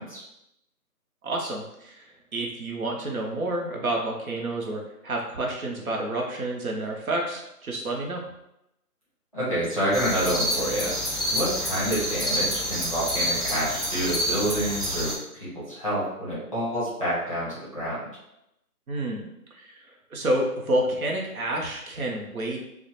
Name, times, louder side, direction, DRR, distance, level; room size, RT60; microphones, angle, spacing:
voice 1, 1.2-8.2 18.9-19.8 20.1-22.6, right 1 dB, 65° right, -1 dB, 0.7 m, -29 dB
voice 2, 9.3-10.9 11.3-15.1 15.4-18.0, equal, 20° left, -11 dB, 0.7 m, -28 dB
sound 1, 9.9-15.2, equal, ahead, 0.3 m, -28 dB
2.3 x 2.1 x 2.9 m, 0.84 s
figure-of-eight pair, 170°, 46 cm